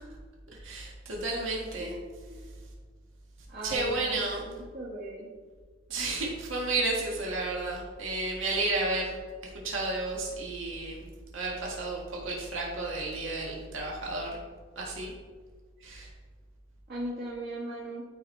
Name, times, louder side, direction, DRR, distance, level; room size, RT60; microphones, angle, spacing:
voice 1, 0.6-1.9 3.6-4.4 5.9-9.2 9.6-11.1 11.3-14.3 14.7-15.1 15.8-16.1, right 2 dB, 75° right, -2 dB, 1.7 m, -32 dB
voice 2, 1.8-2.5 3.5-5.3 16.9-18.0, right 1 dB, 50° right, -7 dB, 1.7 m, -38 dB
13.5 x 4.7 x 3.3 m, 1.5 s
head